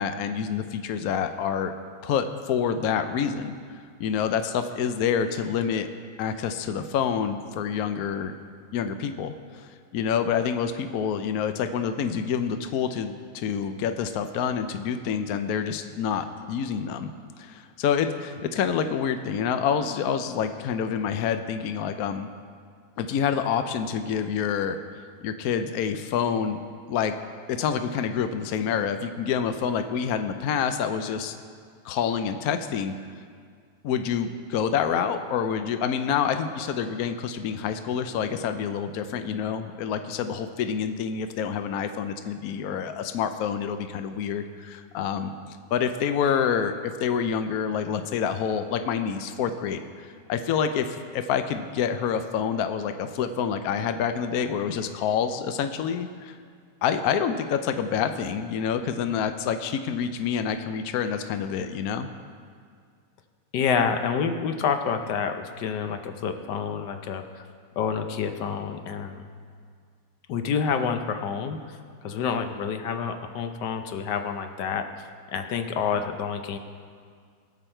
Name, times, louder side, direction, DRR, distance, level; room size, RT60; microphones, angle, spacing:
voice 1, 0.0-1.7 2.0-3.6 4.0-5.9 6.2-8.3 8.7-9.7 9.9-17.1 17.4-22.3 23.0-24.8 25.2-26.6 26.9-27.1 27.5-31.4 31.8-32.9 33.8-45.3 45.7-56.4 56.8-62.1, left 7 dB, 65° left, 8 dB, 1.1 m, -27 dB
voice 2, 63.5-67.4 67.8-69.2 70.3-71.6 72.0-76.6, left 6 dB, 90° left, 7 dB, 1.5 m, -28 dB
20.0 x 7.1 x 4.4 m, 2.1 s
omnidirectional pair, 1.8 m